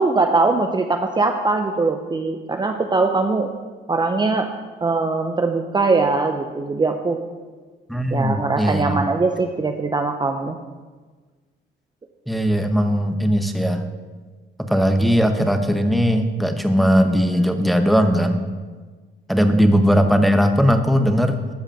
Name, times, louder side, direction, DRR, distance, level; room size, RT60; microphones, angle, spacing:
voice 1, 0.0-3.5 3.9-4.5 4.8-7.2 8.1-10.6 19.5-19.6, right 3 dB, 20° right, 5 dB, 0.7 m, -21 dB
voice 2, 7.9-9.0 12.3-13.8 14.7-18.4 19.3-21.4, equal, ahead, 6 dB, 1.0 m, -18 dB
13.0 x 4.9 x 6.6 m, 1.4 s
cardioid pair, 90°, 20 cm